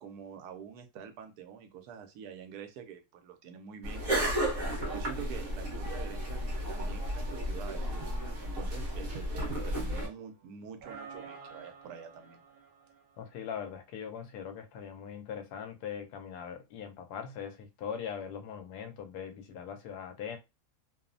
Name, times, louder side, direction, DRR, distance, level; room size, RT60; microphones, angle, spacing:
voice 1, 0.0-6.4 6.7-8.0 8.4-12.4, right 7 dB, 85° right, 1.1 m, -46 dB
sound 1, 3.8-10.1, equal, 45° right, 0.9 m, -33 dB
sound 2, 9.5-10.4 10.8-13.6, right 5 dB, 65° right, 0.5 m, -50 dB
voice 2, 13.2-20.4, left 7 dB, 85° left, 1.1 m, -41 dB
2.9 x 2.0 x 2.5 m
omnidirectional pair, 1.6 m